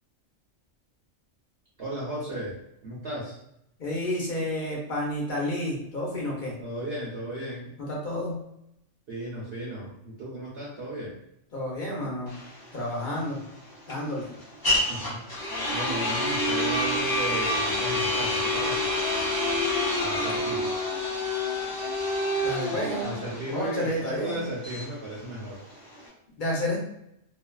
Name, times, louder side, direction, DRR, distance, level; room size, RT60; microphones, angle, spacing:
voice 1, 1.8-3.4 6.6-7.7 9.1-11.2 14.9-18.9 20.0-20.9 22.7-25.6, right 1 dB, 60° right, -6 dB, 0.8 m, -35 dB
voice 2, 3.8-6.5 7.9-8.4 11.5-12.3 12.7-13.4 13.9-14.3 22.4-23.1 23.5-24.4 26.4-26.8, left 1 dB, 45° left, -3 dB, 0.8 m, -30 dB
sound 1, 12.3-26.1, left 1 dB, 30° left, 0.4 m, -28 dB
2.5 x 2.2 x 2.2 m, 0.79 s
omnidirectional pair, 1.3 m